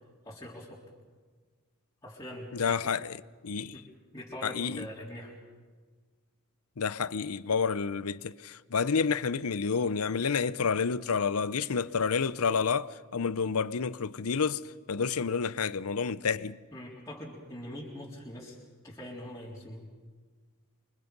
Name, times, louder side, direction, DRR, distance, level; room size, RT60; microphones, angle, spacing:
voice 1, 0.2-0.8 2.0-2.9 3.7-3.8 4.1-5.4 16.7-18.6 18.8-19.9, equal, 15° left, 3.9 m, -43 dB
voice 2, 2.5-3.2 3.4-3.8 4.4-4.9 6.8-14.6 14.9-16.6, left 5 dB, 80° left, 0.7 m, -29 dB
28.0 x 24.5 x 5.4 m
head